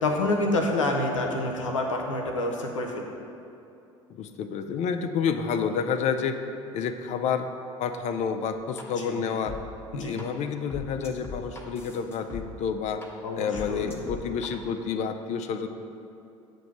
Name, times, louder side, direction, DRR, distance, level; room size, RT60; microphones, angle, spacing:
voice 1, 0.0-3.1 9.0-9.2 9.9-10.2 13.2-13.9, left 2 dB, 85° left, 2 dB, 0.7 m, -28 dB
voice 2, 4.1-6.4 6.7-7.5 7.8-9.6 9.9-13.0 13.3-15.7, left 6 dB, 45° left, 8 dB, 0.5 m, -29 dB
sound 1, 8.8-8.9 9.5-9.6 10.2-10.3 10.7-12.4 13.0-13.1 13.5-14.5, left 4 dB, 15° left, 1.1 m, -39 dB
7.9 x 2.7 x 5.8 m, 2.7 s
hypercardioid pair, 65°, 16 cm